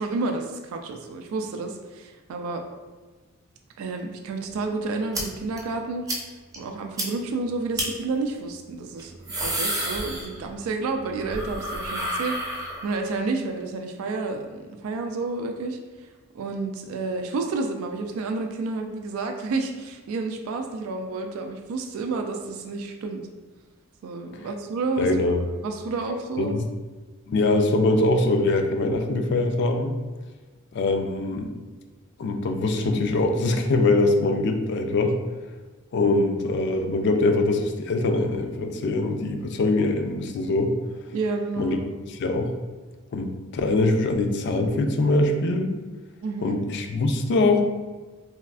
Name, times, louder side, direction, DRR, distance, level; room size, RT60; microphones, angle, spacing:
voice 1, 0.0-2.7 3.8-6.1 6.6-15.8 16.3-23.2 24.0-25.1 25.6-26.6 41.1-41.8 46.2-46.6, right 3 dB, 85° right, 5 dB, 0.3 m, -30 dB
sound 1, 5.1-5.2 5.6-5.7 6.1-6.2 6.5-6.6 7.0-7.1 7.8-7.9 9.0-10.7 11.0-13.1, right 1 dB, 15° right, 0.5 m, -30 dB
voice 2, 25.0-25.4 26.4-26.6 27.3-29.9 30.7-31.5 32.2-35.2 35.9-40.8 41.6-41.8 42.0-42.5 43.1-45.7 46.4-47.6, left 2 dB, 55° left, 5 dB, 0.3 m, -23 dB
3.4 x 2.4 x 2.3 m, 1.3 s
head